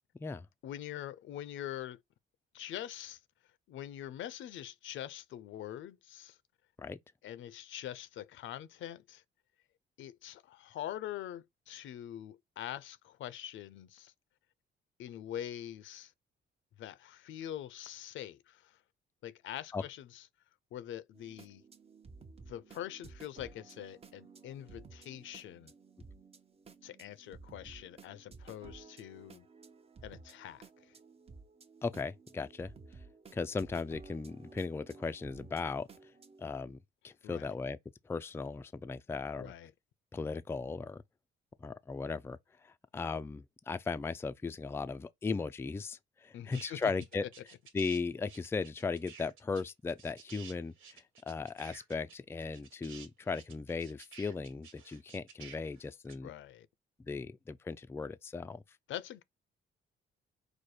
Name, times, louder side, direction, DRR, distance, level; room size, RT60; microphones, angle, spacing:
voice 1, 0.6-2.0 2.5-3.2 3.7-6.4 7.2-9.2 10.0-14.1 15.0-16.1 16.8-18.8 19.2-20.2 20.7-21.6 22.5-25.7 26.8-29.5 30.0-30.9 37.2-37.5 39.4-39.7 46.3-46.9 56.2-56.7 58.9-59.2, left 11 dB, 75° left, 0.6 m, -44 dB
sound 1, 21.1-36.4, right 4 dB, 30° right, 0.7 m, -55 dB
voice 2, 31.8-32.7 33.3-35.9 36.4-36.8 37.0-37.8 38.1-39.5 40.1-41.0 41.6-42.4 42.6-47.3 47.7-56.3 57.1-58.6, left 4 dB, 10° left, 0.3 m, -37 dB
sound 2, 46.5-48.0 48.2-56.1, right 6 dB, 85° right, 1.4 m, -52 dB
4.9 x 2.1 x 4.2 m
cardioid pair, 90°, 20 cm